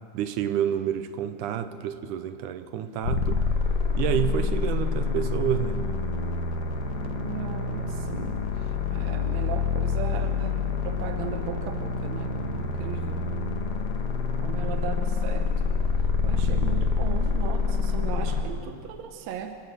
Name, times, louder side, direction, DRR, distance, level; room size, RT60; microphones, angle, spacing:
voice 1, 0.1-3.5 4.0-5.9, right 10 dB, 85° right, 10 dB, 2.3 m, -29 dB
sound 1, 3.0-18.4, left 4 dB, 90° left, 3.4 m, -27 dB
voice 2, 7.2-10.6 10.8-13.2 14.4-15.5 16.2-19.5, right 8 dB, 65° right, 6 dB, 2.1 m, -37 dB
27.5 x 13.0 x 7.9 m, 2.4 s
omnidirectional pair, 3.6 m